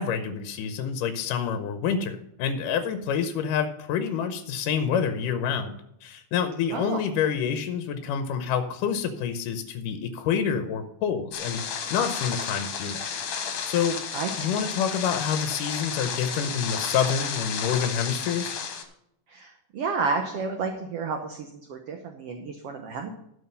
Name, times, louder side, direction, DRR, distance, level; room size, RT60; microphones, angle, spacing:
voice 1, 0.0-11.6 11.9-13.0 13.7-14.0 14.4-18.6, left 7 dB, 85° left, 8 dB, 2.4 m, -27 dB
voice 2, 6.7-7.0 14.1-14.3 19.3-23.1, right 4 dB, 65° right, 4 dB, 1.6 m, -31 dB
sound 1, 11.3-18.8, left 6 dB, 60° left, 2.4 m, -32 dB
12.5 x 6.4 x 5.6 m, 0.77 s
omnidirectional pair, 3.7 m